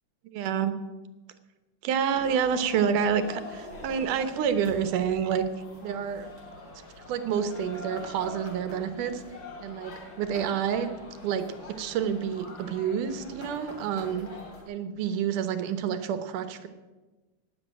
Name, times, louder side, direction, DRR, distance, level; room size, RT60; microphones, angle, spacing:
voice 1, 0.3-0.7 1.8-5.4 5.8-6.3 7.0-9.2 9.6-10.9 11.2-14.3 14.7-16.7, right 7 dB, 90° right, 10 dB, 2.6 m, -28 dB
sound 1, 2.1-14.6, left 2 dB, 40° left, 3.9 m, -44 dB
17.5 x 7.1 x 9.0 m, 1.2 s
omnidirectional pair, 3.5 m